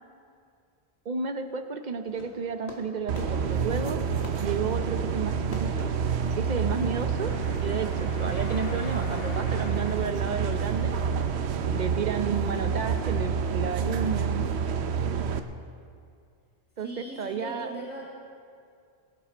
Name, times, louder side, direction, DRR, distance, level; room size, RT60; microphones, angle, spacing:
voice 1, 1.1-4.0 4.4-5.9 6.3-7.3 7.6-11.0 11.7-14.5 16.8-17.7, right 5 dB, 50° right, 8 dB, 0.8 m, -32 dB
Fireworks, 2.0-7.1, left 2 dB, 90° left, 1.9 m, -48 dB
sound 1, 3.1-15.4, right 6 dB, 85° right, 1.0 m, -28 dB
sound 2, 5.3-12.0, left 3 dB, 65° left, 1.2 m, -46 dB
voice 2, 16.8-18.1, right 2 dB, 10° right, -5 dB, 1.7 m, -39 dB
19.0 x 11.5 x 4.4 m, 2.3 s
omnidirectional pair, 1.1 m